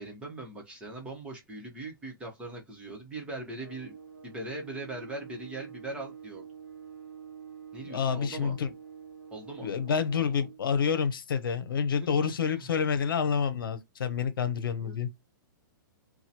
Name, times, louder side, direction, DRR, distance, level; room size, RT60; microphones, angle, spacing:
voice 1, 0.0-6.5 7.7-8.6 9.3-10.0 12.0-12.3 14.8-15.0, right 2 dB, 10° right, 1.1 m, -41 dB
sound 1, 3.6-10.6, right 7 dB, 85° right, 0.9 m, -47 dB
voice 2, 7.8-8.7 9.6-15.1, left 6 dB, 80° left, 0.8 m, -28 dB
2.9 x 2.3 x 4.2 m
hypercardioid pair, 150°, 11 cm